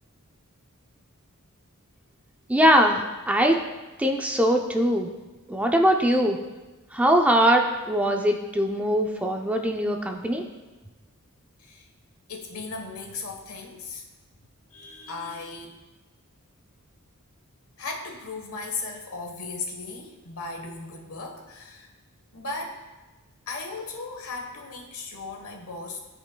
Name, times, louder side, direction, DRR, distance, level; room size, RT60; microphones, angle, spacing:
voice 1, 2.5-3.6 4.0-5.1 5.5-6.4 6.9-10.4, equal, 5° right, 2 dB, 0.4 m, -21 dB
voice 2, 12.3-14.0 14.7-15.7 17.8-21.9 22.3-22.8 23.5-26.0, left 3 dB, 70° left, 2 dB, 1.2 m, -36 dB
14.0 x 5.1 x 2.2 m, 1.2 s
head